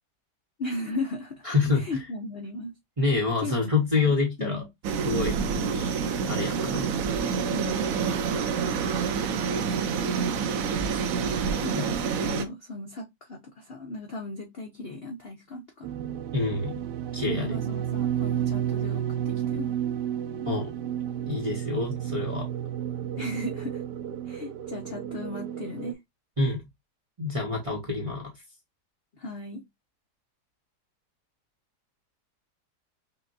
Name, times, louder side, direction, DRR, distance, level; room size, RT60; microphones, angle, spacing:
voice 1, 0.6-1.5 1.7-2.7 3.4-4.7 7.5-7.8 11.6-15.9 17.3-19.7 23.2-23.8 24.3-26.0 29.2-29.6, left 2 dB, 60° left, 0.6 m, -36 dB
voice 2, 1.4-2.0 3.0-4.6 5.0-5.9 6.3-6.9 11.7-11.8 16.3-16.8 17.1-17.6 20.5-20.7 21.3-22.5 26.4-26.6 27.2-28.3, left 3 dB, 25° right, 0.8 m, -27 dB
sound 1, 4.8-12.4, right 6 dB, 70° right, 0.9 m, -27 dB
sound 2, 15.8-25.9, right 10 dB, 85° right, 1.3 m, -31 dB
5.7 x 2.2 x 2.6 m
omnidirectional pair, 1.8 m